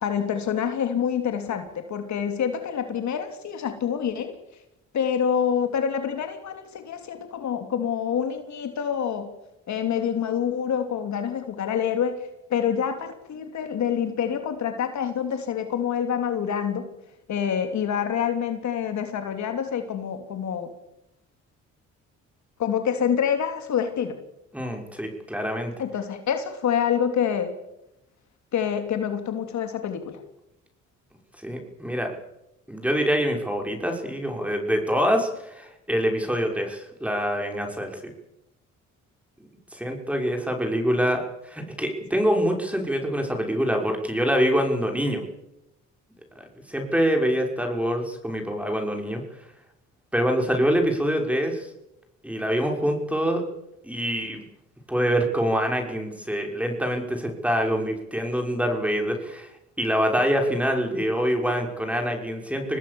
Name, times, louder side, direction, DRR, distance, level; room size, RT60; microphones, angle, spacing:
voice 1, 0.0-4.4 4.9-9.3 9.7-16.9 17.3-20.7 22.6-24.2 25.8-27.5 28.5-30.2, left 8 dB, 65° left, 7 dB, 3.1 m, -27 dB
voice 2, 24.5-25.7 31.4-32.1 32.7-38.1 39.7-45.2 46.4-49.2 50.1-51.7 52.2-53.4 53.8-54.4 54.9-59.5 59.8-62.8, equal, 5° right, 3 dB, 6.2 m, -25 dB
26.0 x 19.0 x 7.1 m, 0.87 s
cardioid pair, 90°, 30 cm